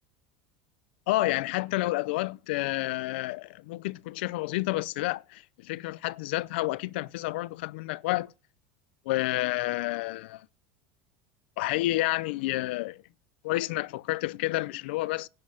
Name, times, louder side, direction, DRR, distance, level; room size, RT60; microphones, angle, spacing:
voice 1, 1.1-8.3 9.1-10.5 11.6-13.0 13.4-15.3, left 19 dB, 75° left, 0.5 m, -30 dB
10.5 x 7.6 x 9.5 m
cardioid pair, 175°, 6 cm